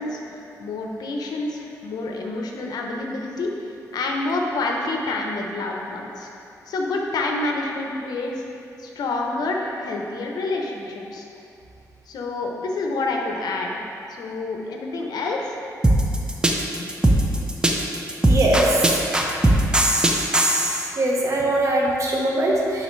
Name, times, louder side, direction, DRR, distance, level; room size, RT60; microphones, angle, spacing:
voice 1, 0.0-6.3 6.7-8.4 8.8-11.3 12.1-13.8 14.1-15.6 16.8-16.9, left 2 dB, 75° left, 0 dB, 0.8 m, -28 dB
sound 1, 15.8-20.9, right 1 dB, 10° right, 0.7 m, -18 dB
voice 2, 18.2-19.2 21.0-22.8, right 1 dB, 50° right, -2 dB, 1.2 m, -21 dB
10.5 x 4.0 x 3.2 m, 2.7 s
cardioid pair, 85°, 7 cm